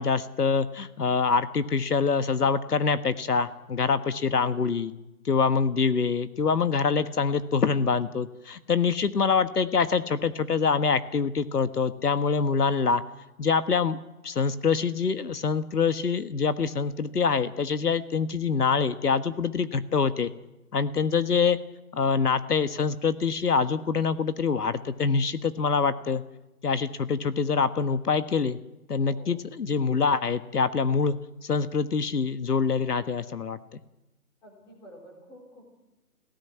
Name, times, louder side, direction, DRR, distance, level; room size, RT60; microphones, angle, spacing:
voice 1, 0.0-4.9 5.2-13.0 13.4-14.0 14.2-20.3 20.7-21.6 21.9-26.2 26.6-28.6 28.9-31.2 31.4-33.6, left 5 dB, 80° left, 12 dB, 1.5 m, -25 dB
voice 2, 29.1-29.4 34.4-35.8, equal, 10° left, 0 dB, 3.9 m, -49 dB
23.5 x 17.5 x 9.5 m, 1.0 s
hypercardioid pair, 170°, 45 cm